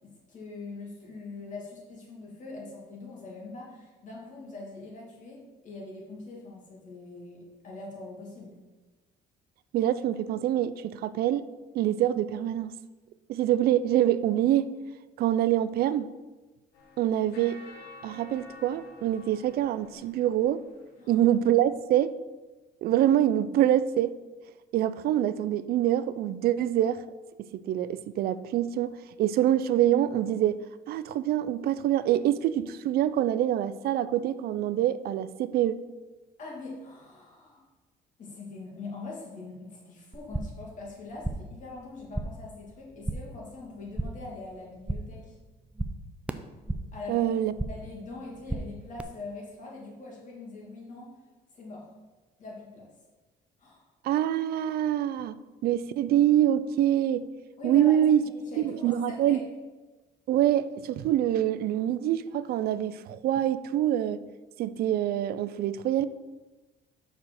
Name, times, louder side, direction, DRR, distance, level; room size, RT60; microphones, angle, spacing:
voice 1, 0.0-8.6 21.0-21.2 36.4-37.6 38.2-45.3 46.9-47.2 47.7-51.2 51.5-51.9 52.4-52.9 53.6-53.8 57.6-59.4, left 3 dB, 50° left, -3 dB, 2.5 m, -42 dB
voice 2, 9.7-11.4 11.7-12.7 13.3-14.7 15.2-16.1 17.0-17.6 18.0-20.6 21.1-22.1 22.8-24.1 24.7-27.0 27.5-30.6 30.9-35.8 47.1-47.5 54.0-55.3 55.6-57.3 57.6-58.2 58.6-59.4 60.3-64.2 64.6-66.1, right 11 dB, 65° right, 15 dB, 0.4 m, -25 dB
sound 1, 16.7-21.0, left 3 dB, 80° left, 1.7 m, -51 dB
sound 2, 40.1-40.7 41.0-41.6 41.9-42.5 42.8-43.4 43.7-44.3 44.6-45.2 45.5-47.0 47.3-47.9 48.2-49.0, right 2 dB, 5° right, 0.4 m, -35 dB
5.5 x 4.8 x 6.4 m, 1.2 s
cardioid pair, 110°, 17 cm